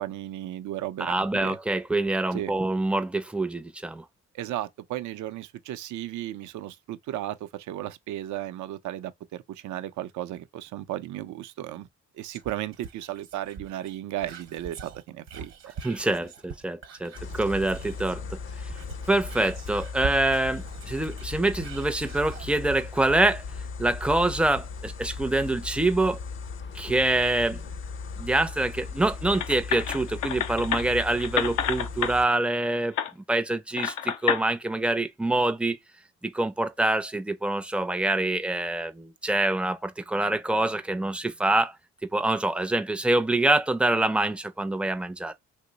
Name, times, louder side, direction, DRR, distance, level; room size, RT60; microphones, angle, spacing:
voice 1, 0.0-1.6 2.3-2.5 4.3-11.9 12.1-15.7, right 13 dB, 75° right, 0.5 m, -35 dB
voice 2, 1.0-4.0 15.8-18.7 19.1-23.4 23.8-26.2 26.7-27.6 28.2-32.9 33.3-35.8 36.2-41.8 42.1-45.3, right 2 dB, 5° right, 0.4 m, -25 dB
Whispering, 12.3-18.3 18.6-22.5 23.0-23.1, right 5 dB, 55° right, 0.9 m, -43 dB
sound 1, 17.1-32.3, left 5 dB, 40° left, 0.6 m, -37 dB
sound 2, 29.3-32.1 33.0-33.1 33.8-34.4, left 9 dB, 85° left, 0.6 m, -29 dB
2.9 x 2.0 x 3.9 m
cardioid pair, 90°, 30 cm